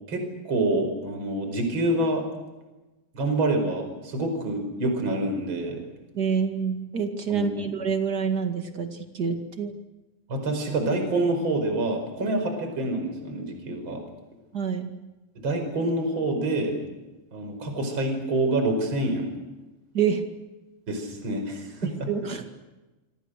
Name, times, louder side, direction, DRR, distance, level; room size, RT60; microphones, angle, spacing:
voice 1, 0.1-2.2 3.1-5.8 7.3-7.7 10.3-14.0 15.4-16.7 17.3-19.3 20.9-22.1, right 2 dB, 25° right, 5 dB, 5.5 m, -27 dB
voice 2, 6.1-9.7 14.5-14.9 19.9-20.2 21.8-22.4, right 6 dB, 45° right, 5 dB, 1.3 m, -27 dB
27.0 x 25.5 x 6.6 m, 1.1 s
omnidirectional pair, 5.1 m